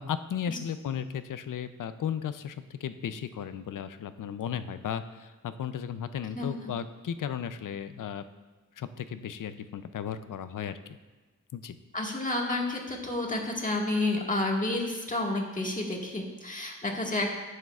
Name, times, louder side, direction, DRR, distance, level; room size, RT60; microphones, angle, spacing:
voice 1, 0.0-8.2 8.8-11.0 11.5-11.8, left 8 dB, 70° left, 11 dB, 0.6 m, -35 dB
voice 2, 11.9-17.4, left 2 dB, 25° left, -1 dB, 1.7 m, -30 dB
15.5 x 6.6 x 2.4 m, 1.2 s
cardioid pair, 65°, 32 cm